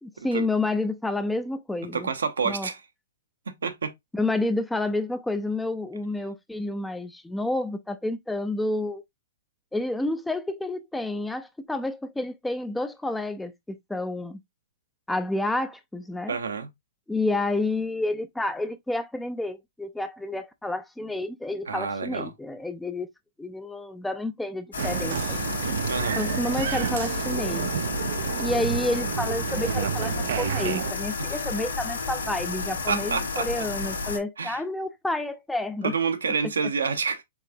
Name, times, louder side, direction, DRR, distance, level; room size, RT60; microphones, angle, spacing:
voice 1, 0.0-2.1 2.4-2.7 4.1-9.0 9.7-14.4 15.1-16.4 17.1-23.1 23.4-25.4 26.2-27.7 28.4-35.9, left 2 dB, 5° left, 0.4 m, -29 dB
voice 2, 1.9-2.8 3.6-3.9 16.3-16.7 21.7-22.3 25.9-26.2 32.9-33.5 34.4-34.6 35.8-37.2, right 5 dB, 85° right, 0.8 m, -28 dB
sound 1, 24.7-34.2, left 4 dB, 90° left, 1.4 m, -31 dB
Applause, 24.8-30.9, right 9 dB, 65° right, 0.4 m, -30 dB
4.7 x 3.3 x 2.6 m
hypercardioid pair, 130°, 0 cm